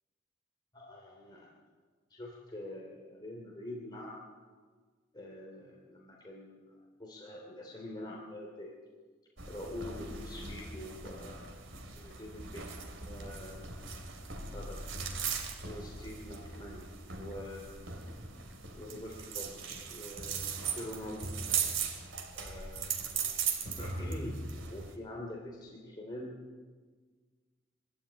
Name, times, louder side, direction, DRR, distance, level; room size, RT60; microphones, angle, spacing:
voice 1, 0.7-1.5 2.1-4.2 5.1-8.7 9.5-11.7 12.0-12.8 13.0-13.9 14.5-14.8 15.1-15.2 15.6-16.9 17.2-18.1 18.7-21.6 22.3-22.9 23.8-24.4 24.7-26.4, left 1 dB, 25° left, -2 dB, 2.9 m, -45 dB
sound 1, 9.4-24.9, right 5 dB, 75° right, 2.8 m, -39 dB
23.0 x 13.5 x 8.7 m, 1.5 s
head